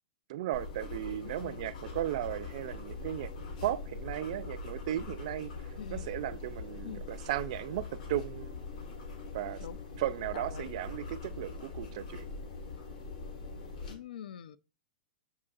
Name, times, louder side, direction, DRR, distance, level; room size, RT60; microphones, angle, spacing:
voice 1, 0.3-3.3 3.6-5.5 5.9-8.7 9.3-9.6 10.0-12.3, right 13 dB, 50° right, 0.4 m, -36 dB
sound 1, 0.5-13.9, left 4 dB, 65° left, 1.4 m, -42 dB
voice 2, 1.2-1.6 5.8-6.1 6.8-7.0 9.6-9.8 10.3-10.7 13.8-14.6, left 9 dB, 85° left, 0.4 m, -45 dB
7.0 x 2.7 x 2.3 m
hypercardioid pair, 160°, 5 cm